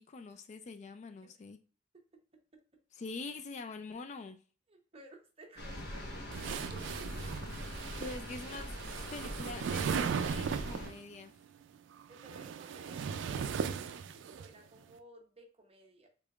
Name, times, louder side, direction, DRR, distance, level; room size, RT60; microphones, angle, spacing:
voice 1, 0.0-1.6 2.9-4.4 8.0-11.3, left 3 dB, 40° left, 8 dB, 0.3 m, -45 dB
voice 2, 4.7-6.8 12.1-16.1, right 2 dB, 30° right, 2 dB, 0.8 m, -56 dB
sound 1, 5.6-10.9, equal, 60° left, 1.1 m, -43 dB
sound 2, 6.3-11.0 12.0-14.5, right 6 dB, 70° right, 0.3 m, -37 dB
3.5 x 3.5 x 2.3 m, 0.38 s
head